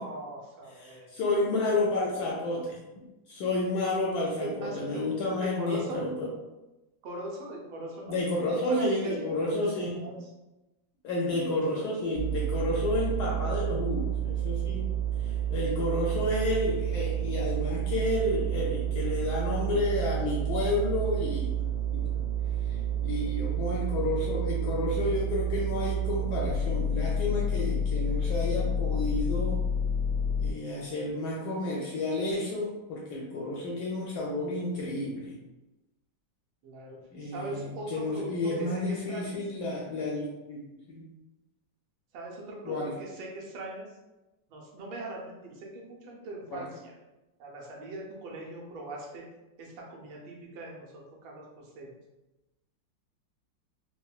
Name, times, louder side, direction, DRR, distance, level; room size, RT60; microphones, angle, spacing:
voice 1, 0.0-1.1 4.4-6.0 7.0-9.6 10.0-10.1 11.8-11.9 36.6-38.3 38.6-39.4 42.1-43.9 44.5-46.9 47.4-49.2 49.6-51.9, right 2 dB, 80° right, -1 dB, 1.4 m, -40 dB
voice 2, 0.7-2.8 3.3-6.3 8.1-10.1 11.0-14.8 15.2-21.5 22.7-29.6 30.4-35.3 37.1-41.1 42.6-42.9 46.5-46.7, left 2 dB, 75° left, -3 dB, 0.9 m, -31 dB
sound 1, 12.1-30.5, right 4 dB, 90° left, 1.4 m, -30 dB
3.7 x 2.1 x 2.3 m, 1.0 s
omnidirectional pair, 2.1 m